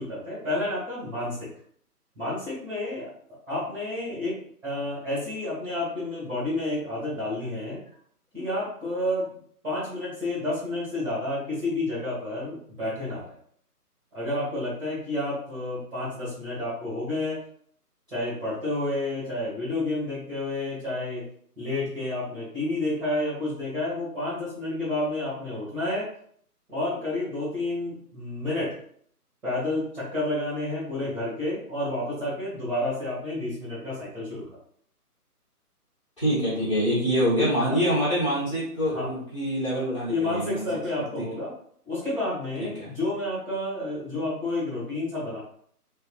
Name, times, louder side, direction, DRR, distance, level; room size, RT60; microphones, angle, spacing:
voice 1, 0.0-1.5 2.1-3.1 3.5-7.8 8.3-9.3 9.6-13.2 14.1-17.4 18.1-21.2 21.6-26.1 26.7-28.7 29.4-34.4 37.6-37.8 38.9-39.1 40.1-41.5 41.8-45.4, left 2 dB, 5° right, -12 dB, 0.9 m, -30 dB
voice 2, 36.2-40.6 41.2-41.3 42.6-42.9, equal, 20° left, -10 dB, 1.1 m, -25 dB
3.0 x 2.2 x 2.3 m, 0.62 s
figure-of-eight pair, 150°, 47 cm